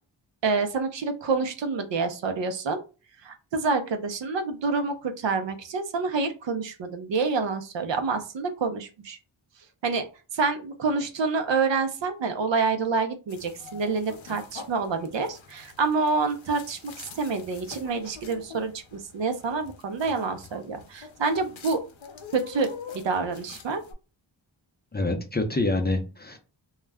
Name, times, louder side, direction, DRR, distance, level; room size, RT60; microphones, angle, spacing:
voice 1, 0.4-2.8 3.2-9.2 9.8-10.0 10.3-21.8 22.3-23.8, right 4 dB, 70° right, 7 dB, 0.6 m, -27 dB
sound 1, 13.3-23.9, left 5 dB, 70° left, 0.7 m, -45 dB
voice 2, 24.9-26.4, left 2 dB, 20° left, 4 dB, 0.5 m, -26 dB
2.3 x 2.1 x 3.4 m, 0.33 s
wide cardioid pair, 75°, 47 cm